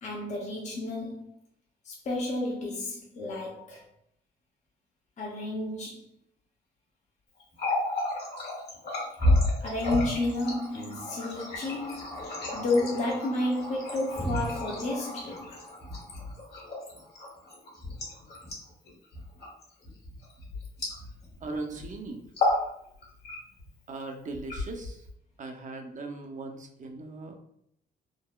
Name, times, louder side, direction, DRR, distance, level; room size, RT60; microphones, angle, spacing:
voice 1, 0.0-1.3 1.8-3.8 5.2-6.1 9.6-12.2 12.5-15.6, left 2 dB, 35° left, -3 dB, 0.6 m, -31 dB
Water tap faucet, 7.4-21.4 21.7-21.9 22.3-22.7 23.0-23.7 24.3-25.1, left 1 dB, 55° left, 1.4 m, -32 dB
voice 2, 21.4-22.2 23.9-25.0 25.4-27.4, right 3 dB, 40° right, 4 dB, 0.5 m, -38 dB
3.7 x 2.2 x 2.2 m, 0.72 s
cardioid pair, 90°, 20 cm